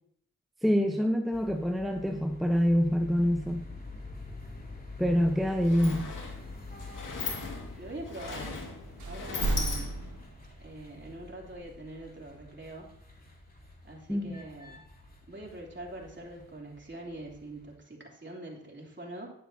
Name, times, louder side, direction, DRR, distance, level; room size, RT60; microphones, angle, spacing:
voice 1, 0.6-3.6 5.0-6.1 14.1-14.4, equal, ahead, 4 dB, 0.9 m, -26 dB
sound 1, 1.3-17.8, left 2 dB, 30° left, 2.9 m, -47 dB
Sliding door, 5.0-5.1 5.4-10.3, left 4 dB, 80° left, 2.2 m, -39 dB
voice 2, 7.8-8.6 9.0-9.9 10.6-12.9 13.8-14.8 15.3-19.3, right 1 dB, 35° right, -2 dB, 3.3 m, -44 dB
sound 2, 9.0-10.7 11.5-11.7, right 3 dB, 70° right, 1.1 m, -33 dB
10.0 x 9.4 x 2.8 m, 0.70 s
supercardioid pair, 40°, 32 cm